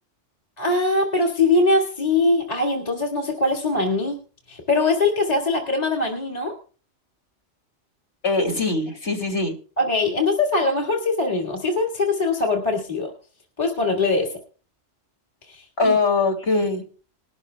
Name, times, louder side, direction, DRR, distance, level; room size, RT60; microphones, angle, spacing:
voice 1, 0.6-4.2 4.5-6.5 9.8-13.1 13.6-14.3 15.5-16.0, left 3 dB, 35° left, -1 dB, 2.1 m, -22 dB
voice 2, 8.2-9.6 15.8-16.8, left 3 dB, 55° left, 2 dB, 3.1 m, -22 dB
20.5 x 12.5 x 2.3 m, 0.38 s
omnidirectional pair, 1.2 m